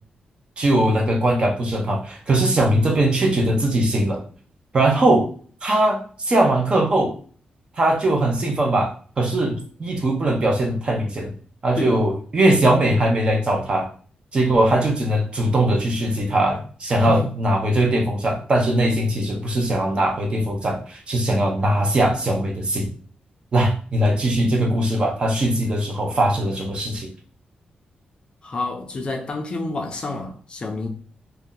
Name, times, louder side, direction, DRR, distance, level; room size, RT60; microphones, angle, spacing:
voice 1, 0.6-4.2 4.7-5.3 5.6-7.1 7.8-11.3 11.6-13.9 14.3-22.9 23.5-27.1, right 1 dB, 35° right, 0.6 m, -20 dB
voice 2, 28.4-30.9, left 2 dB, 35° left, 0.5 m, -28 dB
2.7 x 2.1 x 3.7 m
wide cardioid pair, 170°, 3 cm